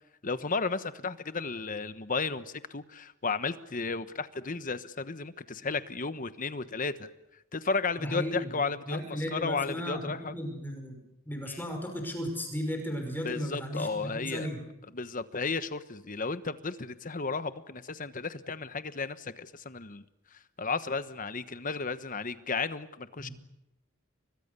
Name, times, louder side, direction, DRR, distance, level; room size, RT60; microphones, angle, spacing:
voice 1, 0.2-7.1 7.5-10.4 11.5-11.6 13.2-14.5 14.9-20.0 20.3-23.3, left 4 dB, 40° left, 12 dB, 1.2 m, -34 dB
voice 2, 8.0-14.6 23.2-23.3, equal, 10° left, 4 dB, 5.5 m, -35 dB
30.0 x 23.5 x 6.9 m, 0.86 s
head